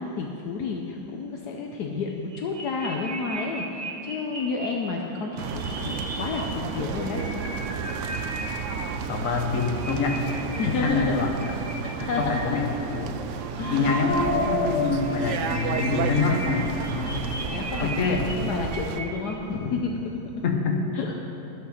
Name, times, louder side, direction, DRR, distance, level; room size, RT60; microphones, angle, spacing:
voice 1, 0.0-5.4 5.7-7.2 10.6-11.2 11.8-12.6 13.6-13.9 17.5-18.0 18.3-20.0 20.9-21.1, left 4 dB, 70° left, 1 dB, 1.2 m, -30 dB
sound 1, 2.1-4.7 5.2-6.4 6.7-8.7 9.4-12.4 13.2-14.7 14.9-19.3, equal, 10° right, 1.0 m, -34 dB
sound 2, 5.4-19.0, right 6 dB, 70° right, 0.7 m, -32 dB
voice 2, 9.1-10.2 10.7-11.3 12.2-12.7 12.9-13.2 13.7-17.2 17.8-18.2 20.4-20.8, left 4 dB, 55° left, 2 dB, 1.3 m, -26 dB
13.5 x 5.8 x 6.4 m, 2.9 s
omnidirectional pair, 1.8 m